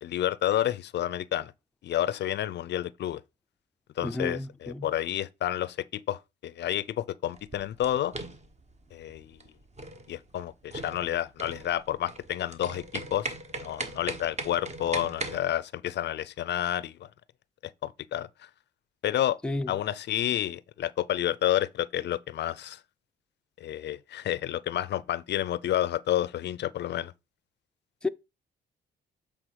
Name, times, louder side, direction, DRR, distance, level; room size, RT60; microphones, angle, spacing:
voice 1, 0.0-1.5 1.8-3.2 4.0-8.1 8.9-9.4 10.1-13.3 13.6-17.1 17.8-18.3 19.0-19.4 19.7-22.8 23.6-27.1, left 12 dB, 60° left, 0.5 m, -30 dB
voice 2, 4.0-4.9 19.4-19.7 28.0-28.1, left 2 dB, 5° left, 0.4 m, -31 dB
sound 1, 7.3-15.4, right 2 dB, 35° right, 1.2 m, -39 dB
7.8 x 3.5 x 4.7 m
cardioid pair, 90°, 20 cm